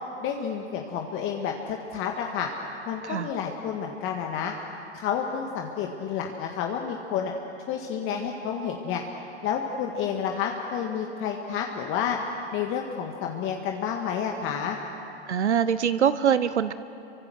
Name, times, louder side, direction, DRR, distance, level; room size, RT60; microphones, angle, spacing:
voice 1, 0.2-2.5 2.9-4.5 4.9-7.3 7.7-9.0 9.4-12.2 12.5-14.8, left 7 dB, 35° left, 2 dB, 1.8 m, -30 dB
voice 2, 15.3-16.7, right 8 dB, 85° right, 14 dB, 0.8 m, -23 dB
28.0 x 24.0 x 6.4 m, 2.9 s
hypercardioid pair, 105°, 33 cm